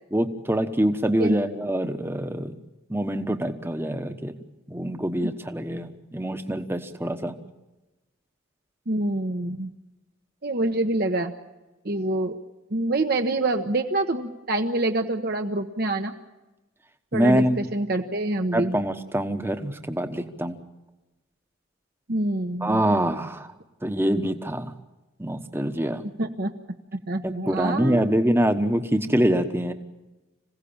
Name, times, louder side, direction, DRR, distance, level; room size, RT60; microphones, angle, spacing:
voice 1, 0.1-2.5 2.9-4.3 4.7-7.3 17.1-17.6 18.5-20.6 22.6-23.5 23.8-24.7 25.2-26.0 27.2-29.7, right 1 dB, 10° right, 8 dB, 1.1 m, -25 dB
voice 2, 8.9-9.7 10.4-11.3 11.8-12.4 12.7-16.1 17.1-18.7 22.1-22.8 26.2-26.5 27.1-28.1, right 2 dB, 45° right, 4 dB, 1.0 m, -26 dB
26.0 x 16.5 x 8.7 m, 1.1 s
head